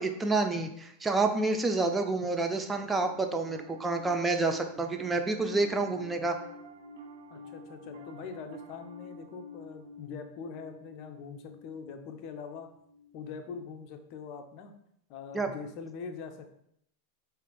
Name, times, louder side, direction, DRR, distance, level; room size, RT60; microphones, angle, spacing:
voice 1, 0.0-6.3 15.3-15.5, right 3 dB, 15° right, 5 dB, 0.4 m, -28 dB
Piano, 2.7-14.2, left 1 dB, 70° right, 0.5 m, -50 dB
voice 2, 7.3-12.7 13.1-14.7 15.1-16.6, left 5 dB, 50° left, 5 dB, 0.5 m, -43 dB
5.1 x 2.5 x 2.2 m, 0.72 s
hypercardioid pair, 95°, 0 cm